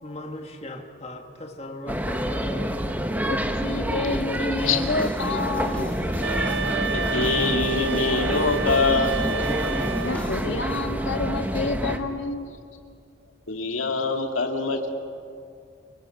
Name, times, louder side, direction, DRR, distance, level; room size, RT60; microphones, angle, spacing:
voice 1, 0.0-3.1, left 1 dB, 30° left, 2 dB, 2.0 m, -38 dB
sound 1, 1.9-12.0, equal, 10° right, 1.4 m, -27 dB
voice 2, 3.3-6.0 10.0-12.5, left 3 dB, 65° left, 5 dB, 1.9 m, -29 dB
sound 2, 4.6-10.5, equal, 5° left, 2.6 m, -39 dB
sound 3, 6.2-10.4, right 4 dB, 65° right, 0.6 m, -29 dB
voice 3, 6.9-9.2 13.5-14.9, left 4 dB, 90° left, 2 dB, 2.4 m, -24 dB
30.0 x 25.0 x 6.5 m, 2.3 s
head